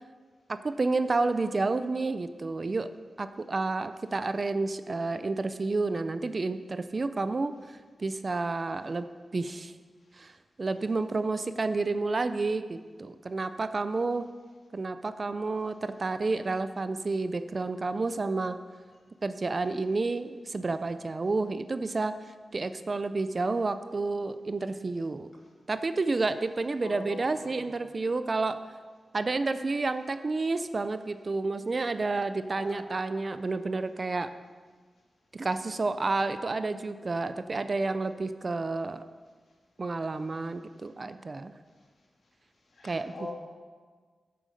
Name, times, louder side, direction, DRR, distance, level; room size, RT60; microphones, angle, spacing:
voice 1, 0.5-2.9 3.2-9.1 9.3-9.7 10.2-10.3 10.6-14.3 14.7-18.6 19.2-22.2 22.5-25.3 25.7-28.6 29.1-34.3 35.3-39.0 39.8-41.5 42.8-43.1, right 3 dB, 45° right, 11 dB, 0.5 m, -30 dB
voice 2, 26.8-27.6 32.6-33.0 42.8-43.3, left 2 dB, 70° left, -2 dB, 2.8 m, -42 dB
9.0 x 7.7 x 6.6 m, 1.5 s
cardioid pair, 60°, 0 cm